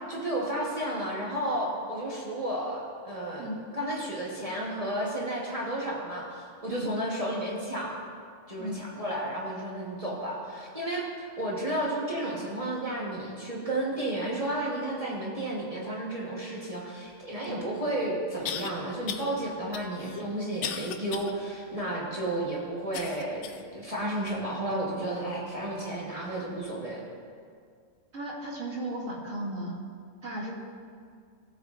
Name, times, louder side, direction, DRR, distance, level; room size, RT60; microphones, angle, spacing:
voice 1, 0.1-3.5 3.7-8.0 8.5-27.0, right 1 dB, 30° right, -5 dB, 1.3 m, -32 dB
sound 1, 17.4-17.5 18.5-18.7 19.1-19.3 19.7-21.3 21.8-21.9 22.9-23.7 24.3-24.4 25.1-25.2, left 8 dB, 70° left, 0.9 m, -36 dB
voice 2, 28.1-29.8 30.2-30.5, right 1 dB, 80° right, -5 dB, 2.1 m, -35 dB
15.5 x 8.1 x 2.5 m, 2.1 s
omnidirectional pair, 1.3 m